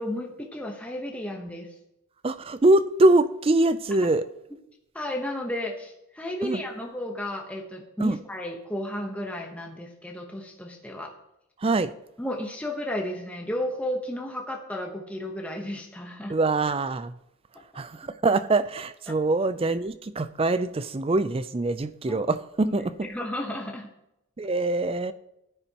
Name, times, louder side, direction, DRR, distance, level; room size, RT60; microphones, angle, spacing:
voice 1, 0.0-1.7 4.0-4.1 4.9-11.1 12.2-16.3 19.1-19.2 22.1-22.3 22.6-22.7 23.1-23.9, left 1 dB, 5° left, 0.9 m, -33 dB
voice 2, 2.2-4.2 6.4-6.6 8.0-8.2 11.6-11.9 16.3-17.1 17.7-23.1 24.4-25.1, right 2 dB, 25° right, 0.4 m, -23 dB
14.5 x 10.0 x 2.9 m
head